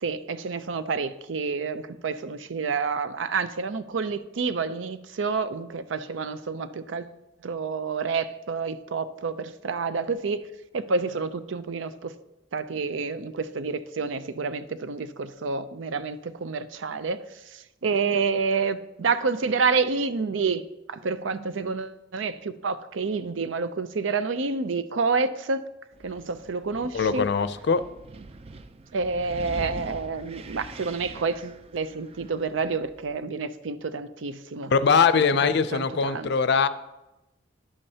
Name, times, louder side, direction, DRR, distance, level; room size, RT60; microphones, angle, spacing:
voice 1, 0.0-7.1 7.4-10.5 10.7-12.1 12.5-17.2 17.5-20.6 20.9-25.6 26.0-27.2 28.9-34.7 35.4-36.3, right 4 dB, 85° right, 13 dB, 0.5 m, -29 dB
Wind, 25.9-33.2, right 2 dB, 35° right, 0.4 m, -43 dB
voice 2, 26.9-27.8 34.7-36.7, left 5 dB, 65° left, 13 dB, 0.5 m, -21 dB
11.0 x 8.7 x 2.8 m, 0.99 s
head